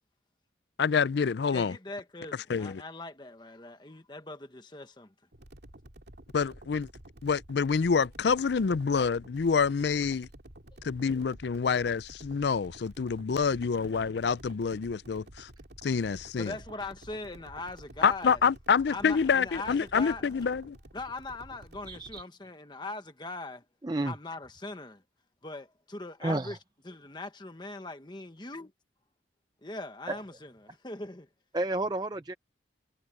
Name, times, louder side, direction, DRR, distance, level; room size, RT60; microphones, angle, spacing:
voice 1, 0.8-1.7 2.5-2.8 6.3-6.9 7.2-10.3 10.8-15.5 15.8-16.5 18.0-20.8, left 5 dB, 65° left, 0.4 m, -27 dB
voice 2, 1.5-5.1 10.7-10.8 16.4-18.4 18.9-20.2 20.9-23.6 24.0-25.0 25.4-26.6 26.8-28.7 29.6-31.3, left 2 dB, 25° left, 1.3 m, -41 dB
sound 1, 5.3-22.2, right 1 dB, 65° right, 2.4 m, -51 dB
voice 3, 21.9-22.2 23.8-24.1 26.2-26.6 30.1-30.2 31.5-32.3, right 2 dB, 20° right, 0.5 m, -31 dB
head